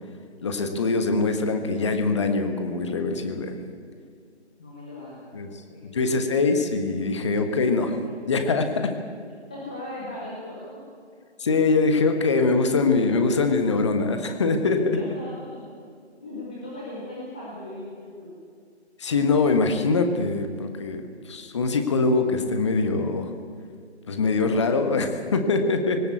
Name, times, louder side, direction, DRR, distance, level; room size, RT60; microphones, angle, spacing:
voice 1, 0.4-3.6 5.3-5.5 5.8-8.0 8.3-8.7 11.4-14.8 19.0-23.3 24.1-26.0, left 3 dB, 25° left, 6 dB, 1.4 m, -23 dB
voice 2, 4.6-5.3 5.7-6.2 8.8-8.9 9.5-10.7 14.9-15.6 16.2-18.3, left 1 dB, 5° left, -6 dB, 0.7 m, -38 dB
20.0 x 18.0 x 8.2 m, 2.2 s
figure-of-eight pair, 155°, 34 cm